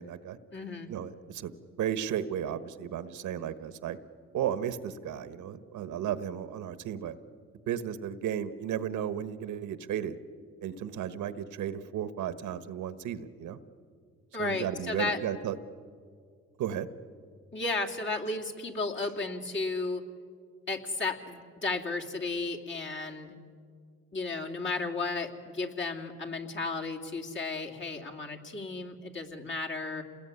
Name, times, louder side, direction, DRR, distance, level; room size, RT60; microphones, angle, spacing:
voice 1, 0.0-0.4 0.9-1.5 1.8-4.0 4.3-7.2 7.7-10.2 10.6-13.6 14.4-15.5 16.6-16.9, right 9 dB, 80° right, 13 dB, 1.4 m, -34 dB
voice 2, 0.5-0.9 14.3-15.2 17.5-20.0 20.7-23.3 24.1-30.0, left 3 dB, 40° left, 2 dB, 2.9 m, -34 dB
28.0 x 20.5 x 9.8 m, 2.1 s
cardioid pair, 90°, 30 cm